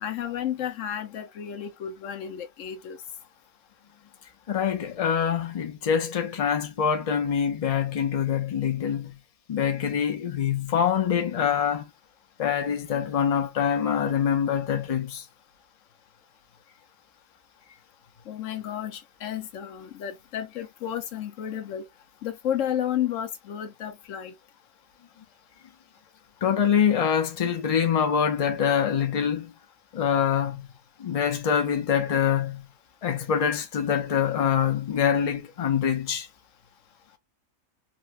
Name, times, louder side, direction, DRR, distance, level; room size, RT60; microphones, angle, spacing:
voice 1, 0.0-3.0 18.3-21.8 22.2-24.3, left 10 dB, 70° left, 1.0 m, -32 dB
voice 2, 4.5-9.1 9.5-11.9 12.4-15.2 26.4-29.5 29.9-30.7 31.0-32.6 33.0-36.3, left 8 dB, 50° left, 0.4 m, -25 dB
4.0 x 2.1 x 2.4 m
omnidirectional pair, 1.4 m